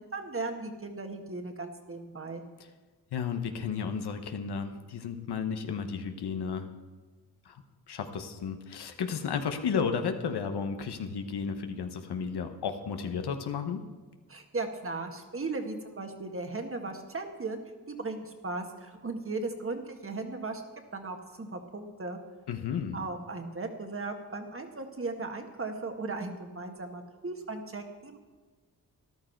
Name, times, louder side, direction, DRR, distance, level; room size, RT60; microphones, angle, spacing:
voice 1, 0.0-2.5 14.3-17.6 17.9-20.6 20.9-22.2 22.9-28.2, right 3 dB, 35° right, 5 dB, 1.7 m, -37 dB
voice 2, 3.1-6.7 7.4-7.6 7.9-13.8 22.5-23.0, left 6 dB, 80° left, 7 dB, 1.2 m, -33 dB
13.5 x 11.5 x 4.6 m, 1.3 s
cardioid pair, 70°, 39 cm